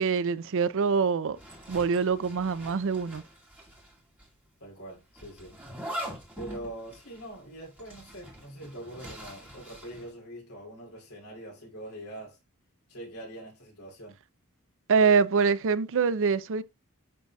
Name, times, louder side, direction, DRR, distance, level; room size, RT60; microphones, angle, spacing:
voice 1, 0.0-1.4 1.7-3.2 14.9-16.6, right 5 dB, 60° right, 0.5 m, -24 dB
Zipper (clothing), 1.4-4.3 5.2-10.1, equal, 10° right, 2.2 m, -43 dB
voice 2, 4.6-5.6 6.4-12.4 12.9-14.2, right 1 dB, 80° left, 2.9 m, -43 dB
11.0 x 4.1 x 2.3 m
head